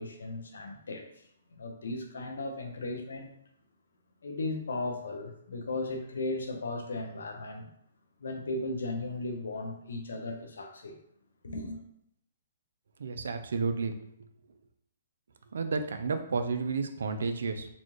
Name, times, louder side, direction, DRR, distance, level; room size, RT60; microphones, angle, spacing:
voice 1, 0.0-3.3 4.2-7.7 8.2-11.0 11.4-11.8, left 2 dB, 85° left, 0.7 m, -36 dB
voice 2, 13.0-13.9 15.5-17.7, right 4 dB, 80° right, 0.4 m, -31 dB
4.0 x 2.4 x 3.1 m
hypercardioid pair, 145°, 0 cm